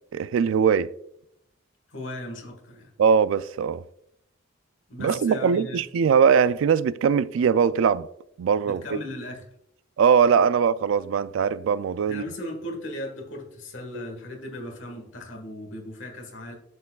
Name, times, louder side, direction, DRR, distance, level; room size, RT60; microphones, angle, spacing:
voice 1, 0.1-0.9 3.0-3.8 5.0-8.1 8.4-8.8 10.0-12.2, right 6 dB, 70° right, 0.3 m, -21 dB
voice 2, 1.9-2.9 4.9-5.8 8.6-9.5 12.0-16.5, left 1 dB, 65° left, 1.6 m, -37 dB
12.0 x 4.5 x 2.3 m
head